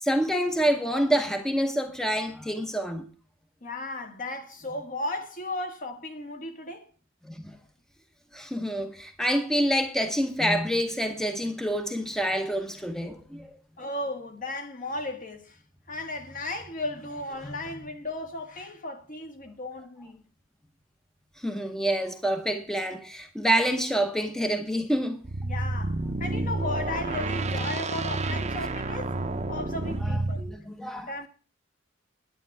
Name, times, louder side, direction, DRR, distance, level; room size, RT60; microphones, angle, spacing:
voice 1, 0.0-3.1 7.3-7.6 8.3-13.5 21.4-25.2 30.0-31.1, equal, 5° left, 0.9 m, -27 dB
voice 2, 3.6-6.9 13.8-15.6 15.9-20.2 25.4-29.2 29.5-30.4 31.1-31.3, left 2 dB, 45° left, 1.6 m, -35 dB
sound 1, 25.2-30.5, right 2 dB, 35° right, 0.8 m, -30 dB
9.6 x 9.4 x 4.7 m
head